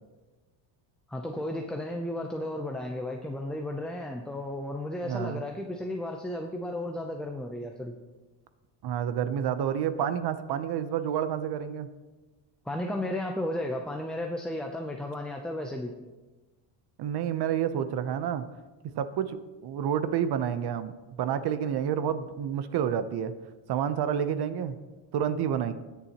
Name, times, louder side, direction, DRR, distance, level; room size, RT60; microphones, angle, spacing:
voice 1, 1.1-7.9 12.7-15.9, left 1 dB, ahead, 1 dB, 0.5 m, -34 dB
voice 2, 5.0-5.4 8.8-11.9 17.0-18.4 18.9-20.9 21.2-23.3 23.7-24.8 25.1-25.7, right 9 dB, 50° right, 12 dB, 0.8 m, -29 dB
20.0 x 7.1 x 2.9 m, 1.2 s
cardioid pair, 130°, 50 cm